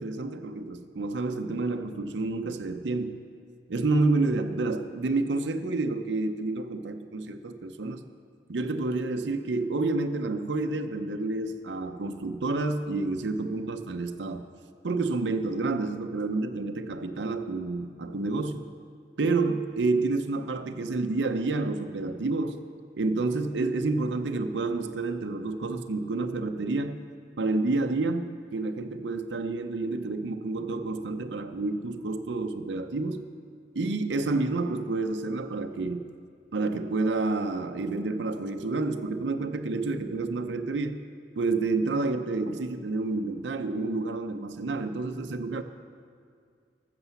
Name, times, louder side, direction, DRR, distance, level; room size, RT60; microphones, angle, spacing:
voice 1, 0.0-3.2 3.7-8.0 8.5-14.5 14.8-18.7 19.2-22.6 22.9-27.0 27.4-33.2 33.7-36.1 36.5-41.0 41.4-45.6, right 3 dB, 80° right, 7 dB, 0.6 m, -29 dB
14.0 x 6.8 x 7.0 m, 2.3 s
head